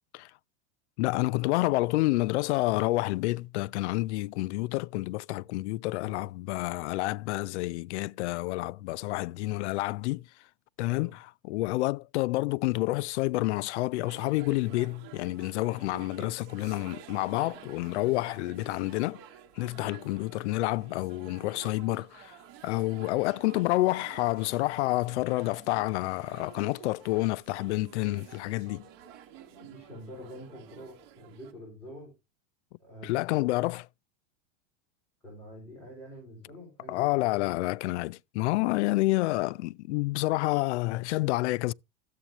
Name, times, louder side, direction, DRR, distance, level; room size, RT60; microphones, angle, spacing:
voice 1, 1.0-10.2 10.8-19.2 19.6-22.4 22.6-28.8 33.0-33.8 36.9-41.7, left 19 dB, 75° left, 0.5 m, -29 dB
voice 2, 10.8-11.1 29.5-32.1 32.8-33.5 35.2-37.3, equal, 5° left, 5.3 m, -47 dB
sound 1, 14.0-31.5, right 8 dB, 55° right, 1.7 m, -50 dB
13.5 x 8.0 x 2.9 m
supercardioid pair, 165°, 35 cm